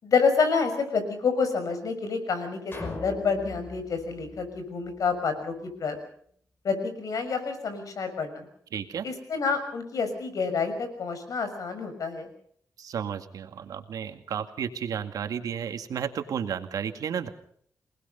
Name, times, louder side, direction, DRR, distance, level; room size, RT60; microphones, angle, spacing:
voice 1, 0.0-6.0 6.6-8.5 9.0-12.3, left 5 dB, 70° left, 9 dB, 6.3 m, -28 dB
sound 1, 2.7-5.3, left 2 dB, 40° left, 5.7 m, -40 dB
voice 2, 8.7-9.1 12.8-17.3, right 8 dB, 85° right, 7 dB, 2.1 m, -32 dB
28.0 x 19.5 x 5.5 m, 0.63 s
cardioid pair, 90°, 6 cm